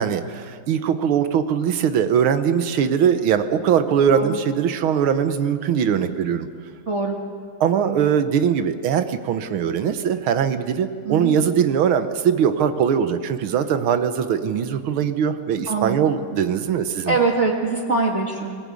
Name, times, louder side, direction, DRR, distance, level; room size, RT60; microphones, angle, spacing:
voice 1, 0.0-6.5 7.6-17.2, right 8 dB, 90° right, 10 dB, 1.9 m, -21 dB
voice 2, 6.9-7.2 7.8-8.0 11.1-11.3 15.7-16.0 17.1-18.6, right 3 dB, 35° right, -1 dB, 2.0 m, -23 dB
20.0 x 18.0 x 8.4 m, 2.1 s
omnidirectional pair, 2.2 m